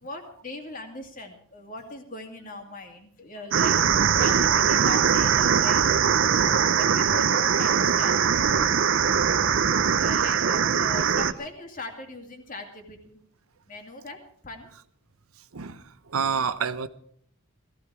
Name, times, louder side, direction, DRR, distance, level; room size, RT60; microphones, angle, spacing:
voice 1, 0.0-5.8 6.8-8.3 10.0-13.2 13.7-14.7, left 2 dB, 40° left, 2.3 m, -40 dB
sound 1, 3.5-11.3, right 7 dB, 60° right, 0.6 m, -21 dB
voice 2, 10.9-11.2 15.5-16.9, right 6 dB, 90° right, 0.9 m, -30 dB
17.5 x 14.5 x 4.8 m
head